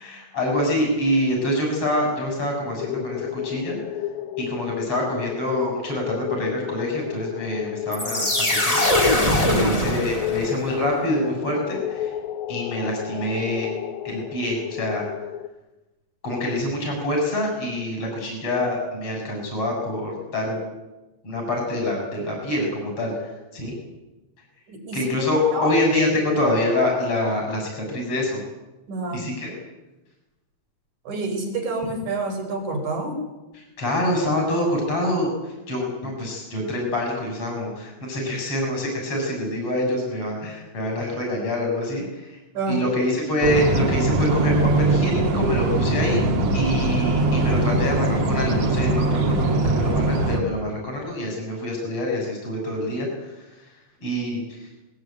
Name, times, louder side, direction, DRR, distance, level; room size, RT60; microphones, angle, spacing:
voice 1, 0.0-3.8 4.4-8.8 9.4-12.1 12.5-13.7 14.0-15.1 16.2-20.6 21.2-23.7 24.9-28.4 29.1-29.5 33.5-42.4 42.7-46.2 46.5-53.7 54.0-54.7, left 1 dB, 50° left, 0 dB, 7.9 m, -26 dB
sound 1, 2.8-15.5, left 11 dB, 80° left, 2.4 m, -33 dB
sound 2, 7.9-10.7, left 1 dB, 15° left, 2.3 m, -21 dB
voice 2, 9.5-9.8 24.7-25.8 28.9-29.3 31.1-33.2 42.5-42.8, right 2 dB, 80° right, 4 dB, 6.0 m, -28 dB
sound 3, 43.4-50.4, right 2 dB, 65° right, 3.6 m, -21 dB
21.0 x 20.5 x 9.3 m, 1.0 s
omnidirectional pair, 3.3 m